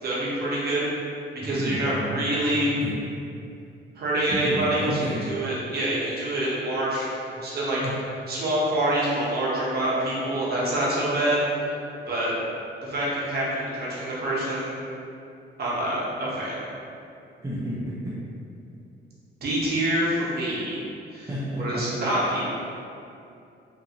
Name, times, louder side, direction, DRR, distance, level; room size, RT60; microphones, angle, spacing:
voice 1, 0.0-0.9 1.3-2.7 3.9-7.8 8.3-11.7 12.1-12.3 12.8-14.7 15.6-16.6 19.4-20.8 21.1-21.3 21.6-22.5, right 1 dB, 55° right, -7 dB, 0.9 m, -26 dB
voice 2, 1.4-2.2 2.8-3.0 4.3-5.3 7.4-7.5 7.8-7.9 17.4-18.1 21.3-21.8, equal, 15° right, -9 dB, 0.5 m, -31 dB
2.5 x 2.5 x 2.8 m, 2.7 s
cardioid pair, 90°, 20 cm